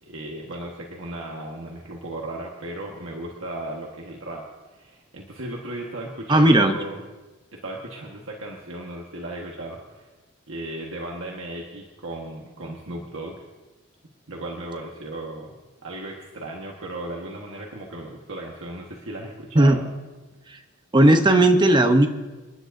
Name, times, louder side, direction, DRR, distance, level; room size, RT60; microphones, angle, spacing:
voice 1, 0.0-4.5 4.7-7.0 7.5-10.1 10.5-13.4 14.3-15.5 15.8-19.9, right 1 dB, 70° right, -1 dB, 1.4 m, -36 dB
voice 2, 6.3-6.7 19.5-19.8 20.9-22.1, right 1 dB, 20° right, 6 dB, 0.8 m, -15 dB
28.0 x 10.5 x 2.6 m, 1.2 s
head